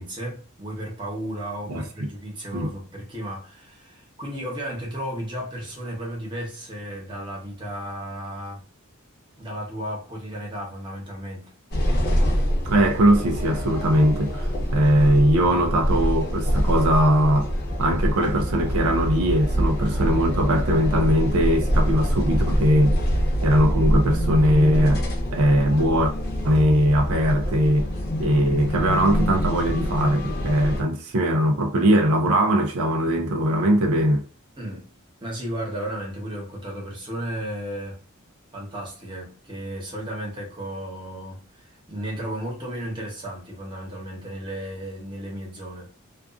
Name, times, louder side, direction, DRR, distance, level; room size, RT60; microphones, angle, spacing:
voice 1, 0.0-8.7 9.4-11.5 34.6-34.9 35.2-38.0 38.5-45.9, right 1 dB, 20° right, 0.9 m, -34 dB
voice 2, 1.7-2.1 2.5-2.7 12.6-17.5 17.8-23.0 23.4-25.0 25.3-26.1 26.4-27.9 28.2-34.3, equal, 90° right, 0.5 m, -20 dB
sound 1, 11.7-30.8, equal, 45° left, 0.6 m, -25 dB
2.4 x 2.3 x 2.4 m
head